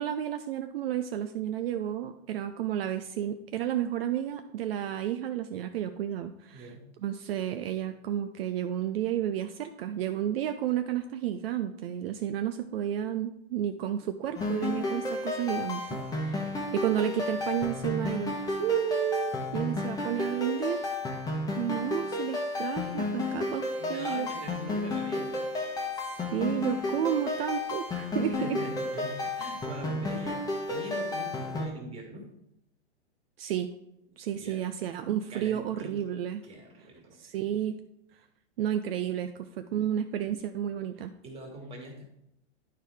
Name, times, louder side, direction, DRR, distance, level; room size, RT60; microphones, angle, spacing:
voice 1, 0.0-6.7 7.0-15.8 16.1-16.5 16.7-20.8 21.6-24.3 26.3-28.6 33.4-33.7 34.2-36.4 37.2-37.8 38.6-41.1, right 10 dB, 65° right, 8 dB, 0.6 m, -31 dB
voice 2, 6.5-6.9 16.1-16.6 17.4-17.5 23.8-25.5 28.2-32.3 34.4-34.6 35.3-35.9 36.4-37.2 41.2-42.0, right 1 dB, 20° right, 1 dB, 1.8 m, -43 dB
sound 1, 14.4-31.7, left 2 dB, 10° left, 1.0 m, -32 dB
10.0 x 4.6 x 3.4 m, 0.82 s
hypercardioid pair, 135°, 32 cm